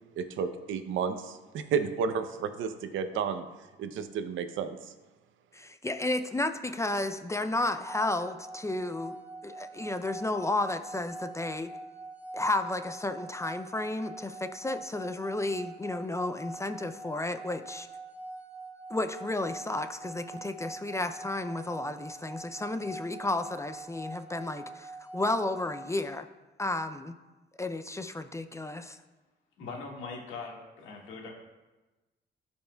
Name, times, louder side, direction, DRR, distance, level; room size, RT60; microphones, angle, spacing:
voice 1, 0.2-3.4 3.8-4.9, right 6 dB, 80° right, 9 dB, 0.6 m, -32 dB
voice 2, 5.5-9.1 9.4-11.7 12.3-17.9 18.9-26.3 26.6-27.1 27.6-29.0, left 2 dB, 15° left, 9 dB, 0.4 m, -32 dB
sound 1, 7.8-25.9, right 2 dB, 10° right, 0.8 m, -44 dB
voice 3, 29.6-31.3, left 4 dB, 80° left, -1 dB, 1.8 m, -41 dB
13.5 x 5.5 x 2.3 m, 1.1 s
cardioid pair, 90°, 20 cm